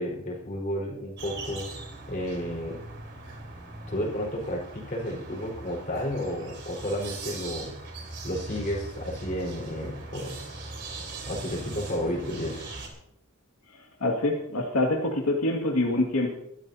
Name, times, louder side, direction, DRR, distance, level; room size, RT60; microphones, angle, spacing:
voice 1, 0.0-1.7 2.1-2.8 3.9-7.8 8.2-10.4 11.3-12.7, equal, 35° left, -3 dB, 4.6 m, -32 dB
sound 1, 1.2-12.9, right 2 dB, 50° right, 3.5 m, -41 dB
voice 2, 14.0-16.3, left 2 dB, 80° left, -1 dB, 2.1 m, -25 dB
21.5 x 12.5 x 2.8 m, 0.78 s
head